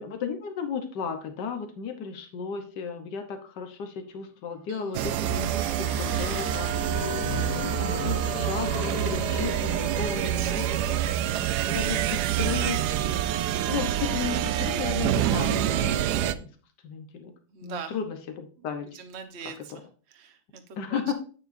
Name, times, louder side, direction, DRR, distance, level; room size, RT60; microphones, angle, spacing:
voice 1, 0.0-7.1 7.8-10.2 10.5-11.1 11.7-12.0 12.4-12.8 13.7-16.5 16.8-17.3 17.6-18.9 19.7-19.8 20.8-21.1, left 6 dB, 90° left, 6 dB, 1.6 m, -34 dB
voice 2, 4.7-5.1 9.9-13.5 17.5-18.0 18.6-21.1, right 6 dB, 45° right, 7 dB, 1.2 m, -43 dB
sound 1, 4.9-16.3, right 11 dB, 80° right, 1.1 m, -27 dB
sound 2, 5.1-11.0, left 7 dB, 65° left, 1.0 m, -37 dB
9.1 x 7.9 x 2.6 m, 0.37 s
omnidirectional pair, 1.8 m